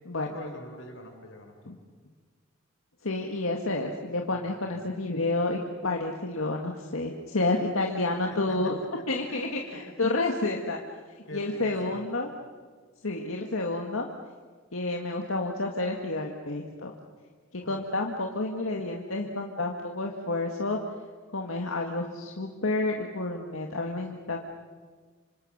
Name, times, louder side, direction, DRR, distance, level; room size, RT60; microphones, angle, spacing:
voice 1, 0.1-1.5 4.3-4.9 9.3-9.4 11.3-12.0 17.6-17.8, left 1 dB, 65° left, 4 dB, 4.9 m, -44 dB
voice 2, 3.0-8.8 9.1-10.8 11.3-12.3 13.0-14.1 14.7-16.9 17.5-20.8 21.3-24.4, left 2 dB, 90° left, 1 dB, 2.0 m, -30 dB
26.5 x 26.5 x 6.6 m, 1.5 s
head